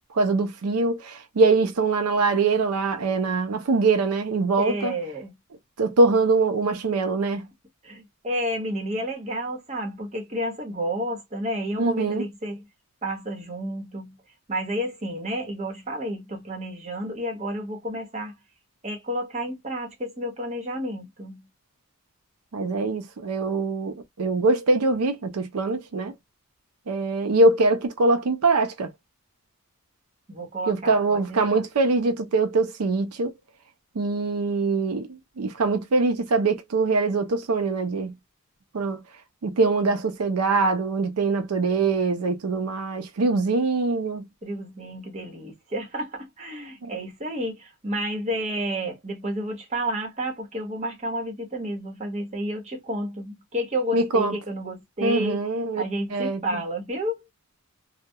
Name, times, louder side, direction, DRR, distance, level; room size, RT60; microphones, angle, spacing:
voice 1, 0.1-4.9 5.8-7.5 11.8-12.2 22.5-26.1 26.9-28.9 30.7-33.3 34.0-38.1 38.7-39.0 39.4-44.2 46.8-46.9 53.9-54.3 55.0-55.8 56.1-56.6, right 3 dB, 80° right, 0.5 m, -23 dB
voice 2, 4.6-5.3 7.8-12.6 13.0-14.2 14.5-18.3 18.8-21.4 30.3-31.6 44.4-55.4 55.8-57.2, equal, 30° right, 0.9 m, -31 dB
2.2 x 2.1 x 2.6 m
head